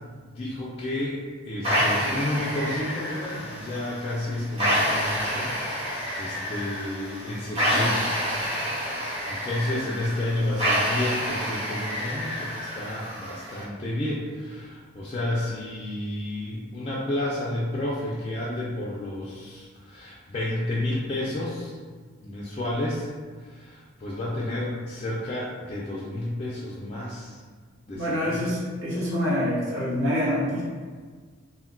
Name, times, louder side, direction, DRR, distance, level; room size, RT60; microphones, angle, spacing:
voice 1, 0.3-8.1 8.9-21.8 22.2-23.1 23.4-27.4 27.9-28.3, left 1 dB, 30° left, -6 dB, 0.3 m, -31 dB
sound 1, 1.6-13.6, equal, 30° right, 1.0 m, -28 dB
voice 2, 27.9-30.6, left 1 dB, 75° right, -7 dB, 0.9 m, -26 dB
2.2 x 2.1 x 3.6 m, 1.6 s
head